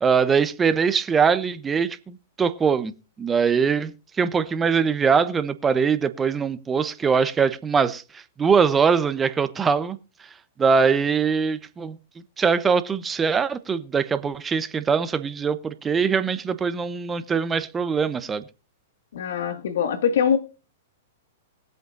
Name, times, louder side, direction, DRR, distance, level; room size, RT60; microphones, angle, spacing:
voice 1, 0.0-2.9 3.2-3.9 4.2-10.0 10.6-12.0 12.4-18.4, right 6 dB, 20° right, 0.9 m, -22 dB
voice 2, 19.1-20.4, left 7 dB, 70° left, 1.9 m, -23 dB
21.0 x 7.9 x 2.6 m
hypercardioid pair, 115°, 0 cm